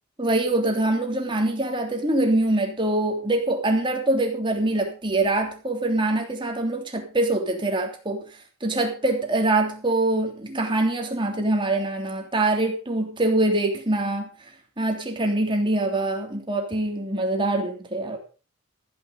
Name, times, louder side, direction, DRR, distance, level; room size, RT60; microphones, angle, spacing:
voice 1, 0.2-8.2 8.6-14.3 14.8-18.2, right 2 dB, 25° right, 2 dB, 3.1 m, -24 dB
15.0 x 10.5 x 5.3 m, 0.35 s
head